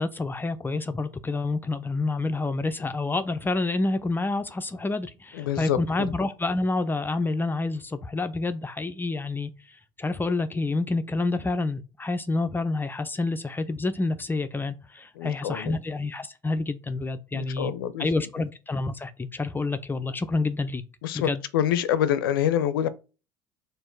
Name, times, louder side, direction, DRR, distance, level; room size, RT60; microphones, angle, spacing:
voice 1, 0.0-17.7 18.0-20.8 21.1-21.4, left 3 dB, 20° left, 0.5 m, -28 dB
voice 2, 5.3-6.1 15.2-15.8 17.3-18.1 21.0-22.9, left 10 dB, 85° left, 0.5 m, -26 dB
4.4 x 2.5 x 4.6 m
hypercardioid pair, 75°, 11 cm